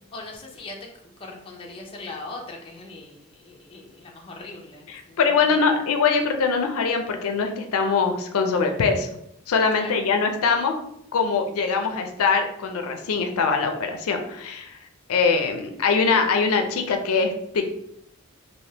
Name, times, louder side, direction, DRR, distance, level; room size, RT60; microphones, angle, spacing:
voice 1, 0.1-0.9 1.2-5.8 9.7-10.0, left 2 dB, 25° left, -1 dB, 0.5 m, -40 dB
voice 2, 4.9-9.1 9.5-10.8 11.1-14.8 15.1-17.8, left 5 dB, 75° left, 5 dB, 0.4 m, -22 dB
3.3 x 2.7 x 2.8 m, 0.74 s
head